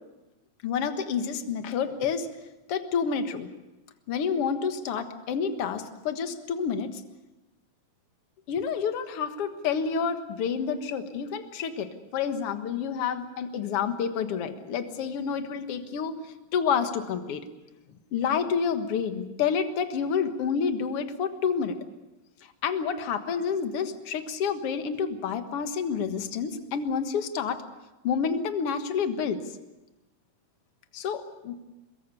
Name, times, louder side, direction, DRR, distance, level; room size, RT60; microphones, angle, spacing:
voice 1, 0.6-2.3 2.7-3.5 4.1-7.0 8.5-16.2 16.5-17.5 17.9-21.8 22.6-27.6 28.0-29.4 30.9-31.6, left 6 dB, 50° left, 8 dB, 2.0 m, -29 dB
24.5 x 21.5 x 6.9 m, 1.0 s
omnidirectional pair, 4.0 m